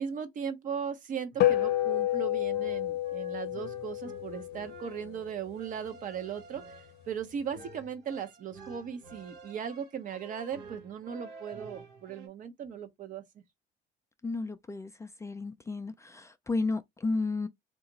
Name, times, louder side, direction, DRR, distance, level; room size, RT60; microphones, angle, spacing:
voice 1, 0.0-6.6 7.1-13.2, right 7 dB, 50° right, 0.7 m, -38 dB
sound 1, 1.3-12.3, right 4 dB, 85° right, 0.8 m, -50 dB
sound 2, 1.4-6.1, left 13 dB, 70° left, 0.6 m, -30 dB
voice 2, 14.2-17.5, left 3 dB, 15° left, 0.3 m, -33 dB
2.9 x 2.4 x 3.8 m
cardioid pair, 110°, 17 cm